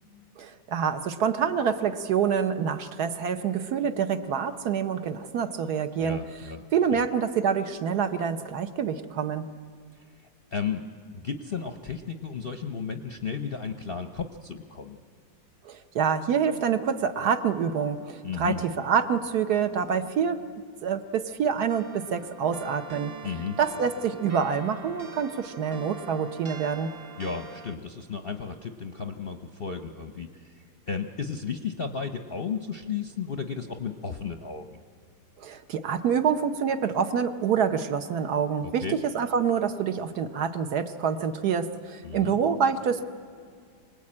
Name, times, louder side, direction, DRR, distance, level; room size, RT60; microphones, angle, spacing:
voice 1, 0.4-6.2 6.7-9.5 15.6-20.4 20.8-23.1 23.6-26.9 35.4-43.0, right 7 dB, 65° right, 9 dB, 1.3 m, -26 dB
voice 2, 6.0-6.7 6.9-7.0 10.1-10.9 11.1-15.0 18.2-18.6 23.2-23.6 27.2-34.8 38.6-39.0 42.0-42.4, left 6 dB, 45° left, 6 dB, 0.7 m, -34 dB
sound 1, 21.7-27.8, right 4 dB, 45° right, 0.8 m, -43 dB
25.5 x 19.0 x 8.7 m, 2.2 s
omnidirectional pair, 2.0 m